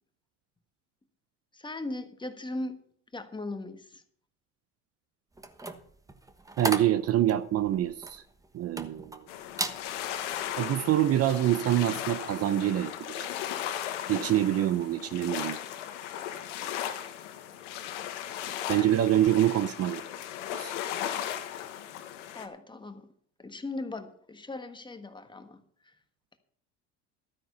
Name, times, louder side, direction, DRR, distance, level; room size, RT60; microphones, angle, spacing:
voice 1, 1.5-2.8 3.1-4.0 18.7-18.9 22.3-23.1 23.4-25.6, left 2 dB, 15° left, 8 dB, 1.4 m, -38 dB
sound 1, 5.4-9.2 9.5-9.8 10.3-10.6, right 2 dB, 10° right, 1.2 m, -35 dB
voice 2, 6.6-8.2 8.5-9.3 10.6-13.3 14.1-15.6 18.7-20.0 20.5-20.7, right 12 dB, 45° right, 14 dB, 0.7 m, -26 dB
sound 2, 9.3-22.5, left 11 dB, 90° left, 1.5 m, -37 dB
12.5 x 9.1 x 5.5 m, 0.62 s
supercardioid pair, 95°, 35 cm